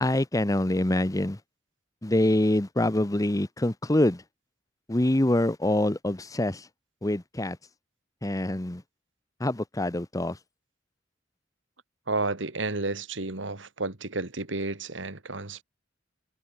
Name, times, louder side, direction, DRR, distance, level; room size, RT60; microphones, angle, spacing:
voice 1, 0.0-1.4 2.0-4.2 4.9-6.7 7.0-7.6 8.2-8.8 9.4-10.4, left 1 dB, 20° left, 0.9 m, -25 dB
voice 2, 12.1-15.6, right 3 dB, 75° right, 2.4 m, -31 dB
head